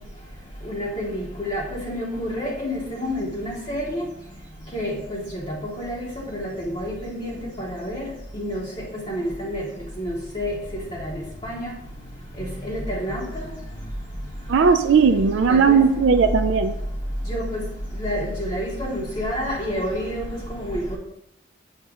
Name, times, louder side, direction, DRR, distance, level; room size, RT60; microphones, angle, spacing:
voice 1, 0.7-4.0 4.7-5.2 5.5-8.1 8.3-8.6 8.9-9.6 10.0-10.5 11.0-11.1 11.4-11.7 12.6-13.2 15.5-15.8 17.3-17.6 18.0-21.0, equal, 30° left, -5 dB, 0.8 m, -29 dB
voice 2, 14.5-16.7, right 5 dB, 70° right, 6 dB, 0.3 m, -17 dB
7.3 x 2.9 x 4.7 m, 0.79 s
head